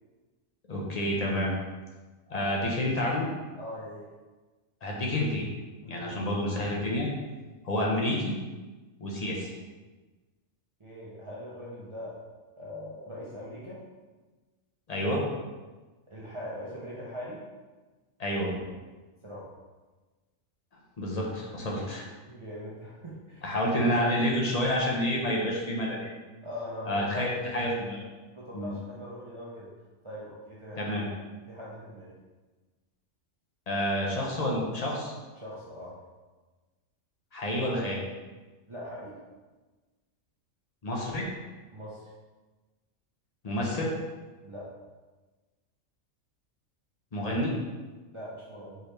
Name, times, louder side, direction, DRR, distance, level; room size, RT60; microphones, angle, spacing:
voice 1, 0.7-1.5 2.3-3.3 4.8-5.5 5.8-7.1 7.6-8.3 9.0-9.5 14.9-15.2 18.2-18.6 21.0-22.1 23.4-26.1 26.9-28.0 28.5-28.7 30.8-31.1 33.7-35.1 37.3-38.0 40.8-41.3 43.4-43.9 47.1-47.5, left 1 dB, 35° left, -3 dB, 0.7 m, -29 dB
voice 2, 3.6-4.1 5.8-6.2 10.8-12.2 12.6-13.8 16.1-17.4 19.2-19.5 22.3-23.4 23.9-24.4 26.4-27.5 28.3-29.7 30.0-30.8 31.5-32.2 35.4-36.0 38.7-39.2 41.7-42.1 44.4-44.7 48.1-48.8, equal, 30° right, -7 dB, 0.6 m, -41 dB
4.6 x 3.2 x 3.2 m, 1.3 s
omnidirectional pair, 1.4 m